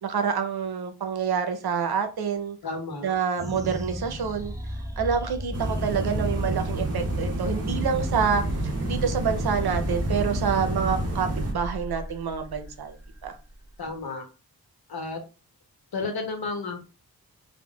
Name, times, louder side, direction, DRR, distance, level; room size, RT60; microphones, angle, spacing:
voice 1, 0.0-2.6 3.0-4.5 5.0-12.9 13.2-13.4, right 6 dB, 90° right, 6 dB, 0.6 m, -27 dB
voice 2, 2.6-3.1 13.8-14.3 14.9-15.2 15.9-16.9, left 3 dB, 75° left, 4 dB, 0.9 m, -32 dB
sound 1, 3.4-14.0, equal, 10° right, 0.4 m, -35 dB
sound 2, 5.5-11.5, right 1 dB, 40° right, 0.8 m, -29 dB
3.6 x 2.1 x 2.2 m, 0.32 s
wide cardioid pair, 110°, 37 cm